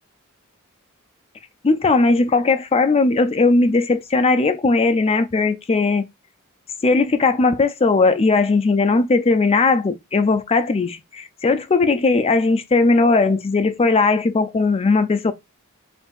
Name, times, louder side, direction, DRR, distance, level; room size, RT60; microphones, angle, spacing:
voice 1, 1.6-6.1 6.8-15.3, left 3 dB, 25° left, 0.4 m, -18 dB
5.5 x 2.6 x 2.3 m
head